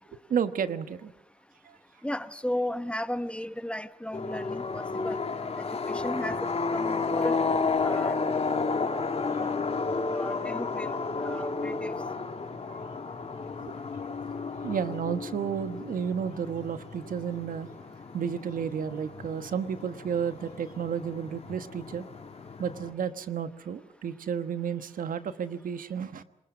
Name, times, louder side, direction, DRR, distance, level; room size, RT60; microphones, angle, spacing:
voice 1, 0.3-1.1 1.6-1.8 9.3-9.8 12.7-12.8 13.7-13.8 14.6-17.7 18.1-22.0 22.6-26.2, right 7 dB, 75° right, 11 dB, 1.3 m, -32 dB
voice 2, 2.0-5.2 5.6-7.4 7.8-8.2 9.4-9.6 10.1-11.9, left 1 dB, 10° left, 13 dB, 1.0 m, -35 dB
sound 1, 4.1-22.9, left 4 dB, 45° left, 2.8 m, -32 dB
26.5 x 21.5 x 6.2 m, 0.83 s
cardioid pair, 70°, 14 cm